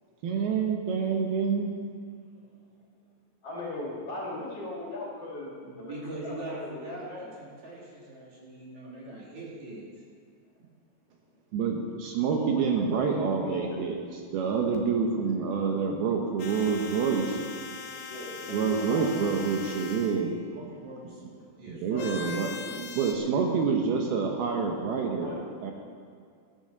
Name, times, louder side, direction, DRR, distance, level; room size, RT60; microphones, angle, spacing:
voice 1, 0.2-1.7 11.5-14.0 14.3-17.4 18.5-20.3 21.7-22.5 23.0-25.3 25.6-25.7, right 5 dB, 75° right, 2 dB, 2.9 m, -27 dB
voice 2, 3.4-5.5 5.8-7.3 12.4-13.9 18.1-19.3 25.2-25.5, left 2 dB, 40° left, -5 dB, 3.0 m, -39 dB
voice 3, 5.6-9.9 20.5-21.1 21.6-23.5, right 1 dB, 45° right, -4 dB, 3.6 m, -42 dB
sound 1, 16.4-20.2 22.0-23.1, left 5 dB, 80° left, 1.7 m, -40 dB
13.0 x 11.0 x 6.7 m, 2.2 s
omnidirectional pair, 4.8 m